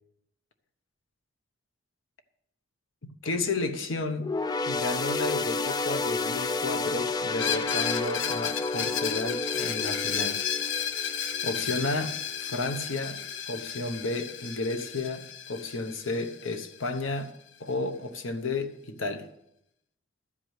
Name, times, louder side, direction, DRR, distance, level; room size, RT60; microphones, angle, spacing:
voice 1, 3.0-4.3 4.7-10.5 11.4-13.2 13.5-17.3 17.6-19.3, left 2 dB, 90° left, 1.0 m, -32 dB
sound 1, 4.2-11.9 12.3-12.5 13.4-13.5, left 3 dB, 20° left, 0.3 m, -31 dB
Screech, 7.3-17.0, left 8 dB, 70° left, 0.6 m, -33 dB
12.5 x 4.9 x 8.0 m
head